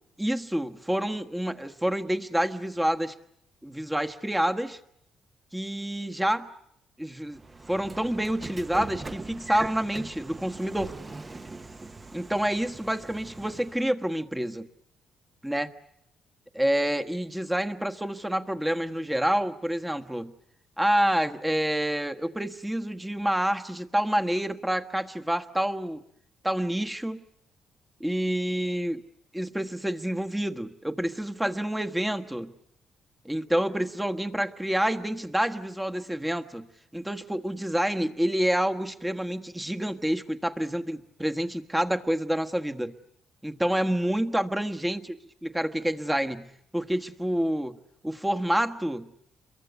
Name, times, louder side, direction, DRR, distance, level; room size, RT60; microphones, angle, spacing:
voice 1, 0.2-3.1 3.6-4.8 5.5-6.5 7.0-7.4 7.7-10.9 12.1-14.7 15.4-15.7 16.5-20.3 20.8-26.0 26.4-27.2 28.0-29.0 29.3-32.5 33.2-36.7 36.9-42.9 43.4-45.2 45.4-47.8 48.0-49.1, right 1 dB, 5° right, 7 dB, 1.4 m, -28 dB
Train / Sliding door, 7.3-13.9, right 3 dB, 25° right, 1.2 m, -41 dB
29.0 x 23.0 x 8.3 m, 0.76 s
cardioid pair, 90°, 0 cm